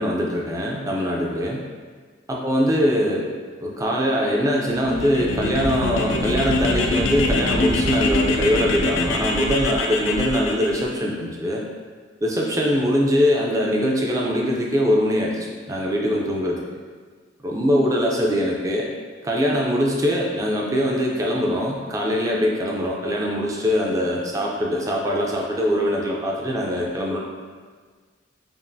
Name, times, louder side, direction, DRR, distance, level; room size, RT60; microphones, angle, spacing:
voice 1, 0.0-1.6 2.3-3.3 3.6-11.6 12.2-16.6 17.4-18.9 19.2-27.2, equal, 15° right, -2 dB, 0.4 m, -22 dB
sound 1, 4.7-10.8, left 2 dB, 85° left, 0.5 m, -24 dB
5.3 x 2.5 x 2.6 m, 1.5 s
head